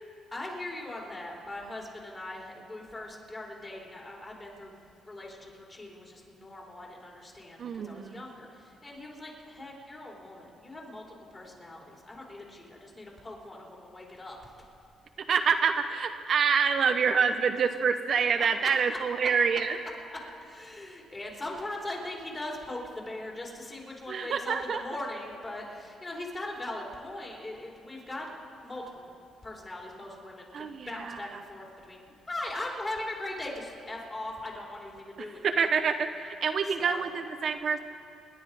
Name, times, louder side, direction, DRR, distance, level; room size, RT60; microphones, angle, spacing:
voice 1, 0.3-4.7 5.1-11.0 11.3-14.4 18.6-18.7 19.2-19.3 20.1-28.3 28.6-29.1 29.4-35.6 36.8-37.0, left 1 dB, 25° left, -2 dB, 3.7 m, -40 dB
voice 2, 7.6-8.2 15.2-19.8 24.1-24.8 30.5-31.3 35.4-37.8, right 6 dB, 55° right, 7 dB, 0.8 m, -27 dB
27.0 x 10.5 x 4.9 m, 2.6 s
cardioid pair, 90°, 0 cm